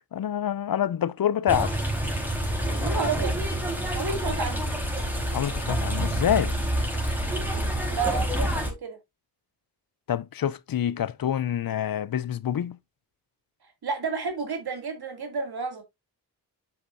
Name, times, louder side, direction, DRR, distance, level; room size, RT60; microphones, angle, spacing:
voice 1, 0.1-1.7 5.3-6.5 10.1-12.8, left 10 dB, 60° left, 0.6 m, -26 dB
sound 1, 1.5-8.7, right 1 dB, 5° right, 3.9 m, -27 dB
voice 2, 2.8-3.4 3.9-4.7 7.8-9.0 13.8-15.8, right 4 dB, 65° right, 2.5 m, -31 dB
8.5 x 6.1 x 2.6 m
cardioid pair, 50°, 40 cm